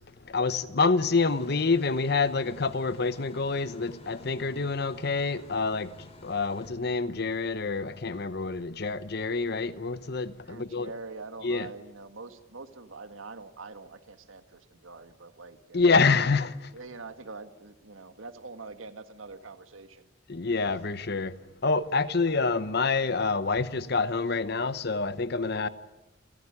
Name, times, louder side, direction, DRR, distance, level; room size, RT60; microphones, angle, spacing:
voice 1, 0.3-10.9 11.4-11.7 15.7-16.7 20.3-21.4 21.6-25.7, left 4 dB, 55° left, 0.9 m, -27 dB
sound 1, 1.2-6.7, left 1 dB, 30° left, 2.7 m, -52 dB
voice 2, 10.4-16.0 16.7-20.1, right 3 dB, 90° right, 1.8 m, -44 dB
29.5 x 14.5 x 9.8 m
head